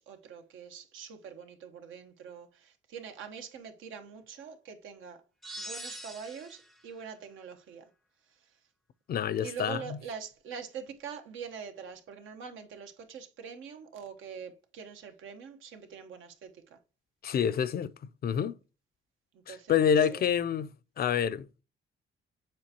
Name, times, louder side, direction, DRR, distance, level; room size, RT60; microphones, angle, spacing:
voice 1, 0.0-5.2 5.6-7.9 8.3-8.6 9.4-16.8 19.3-20.2, right 6 dB, 80° right, 1.1 m, -44 dB
sound 1, 5.4-6.8, right 1 dB, ahead, 0.5 m, -43 dB
voice 2, 9.1-10.0 17.2-17.9 18.2-18.6 19.5-21.6, left 8 dB, 50° left, 0.5 m, -28 dB
7.5 x 4.5 x 2.8 m
cardioid pair, 90°, 20 cm